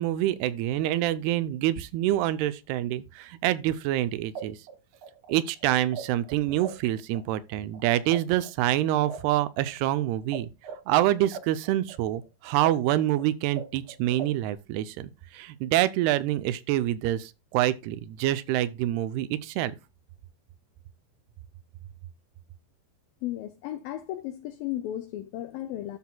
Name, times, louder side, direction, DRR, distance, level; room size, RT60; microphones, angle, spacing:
voice 1, 0.0-4.6 5.3-10.5 10.9-19.8, right 14 dB, 85° right, 2.6 m, -26 dB
sound 1, 4.3-6.9 7.1-10.4 10.6-14.5, right 6 dB, 50° right, 1.8 m, -40 dB
voice 2, 23.2-26.0, left 13 dB, 85° left, 2.0 m, -34 dB
13.0 x 6.0 x 2.2 m
omnidirectional pair, 4.6 m